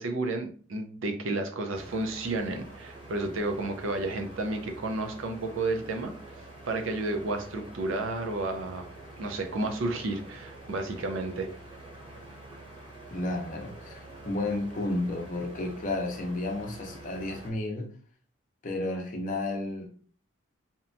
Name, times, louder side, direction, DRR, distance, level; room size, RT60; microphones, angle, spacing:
voice 1, 0.0-6.1 6.7-8.9 9.2-11.5, right 2 dB, 75° right, 0.5 m, -31 dB
sound 1, 1.7-17.5, right 2 dB, 25° right, 0.6 m, -47 dB
voice 2, 13.1-17.9 18.6-19.9, left 2 dB, 40° left, 0.5 m, -32 dB
2.9 x 2.2 x 2.5 m
head